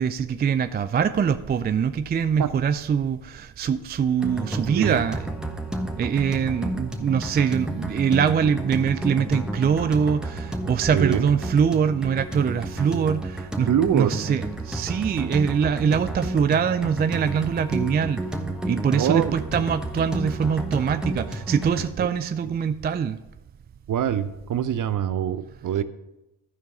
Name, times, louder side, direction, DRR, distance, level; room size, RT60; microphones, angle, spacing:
voice 1, 0.0-5.3 6.0-18.2 18.6-23.2, right 7 dB, 25° right, 11 dB, 0.3 m, -23 dB
sound 1, 4.2-21.9, right 1 dB, ahead, 1.3 m, -31 dB
voice 2, 10.9-11.2 13.7-14.1 19.0-19.3 22.0-22.1 23.9-25.8, right 9 dB, 45° right, 13 dB, 0.7 m, -24 dB
13.0 x 4.6 x 5.6 m, 0.96 s
supercardioid pair, 70°, 44 cm